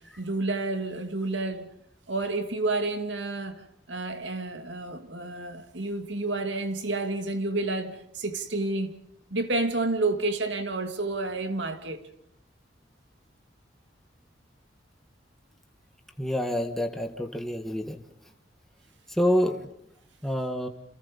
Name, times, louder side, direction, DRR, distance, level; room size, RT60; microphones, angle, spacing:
voice 1, 0.2-1.7 2.1-9.0 9.3-12.0, right 2 dB, 75° right, 2.7 m, -30 dB
voice 2, 16.2-18.0 19.1-19.6 20.2-20.7, equal, ahead, 1.7 m, -27 dB
29.5 x 28.0 x 5.5 m
head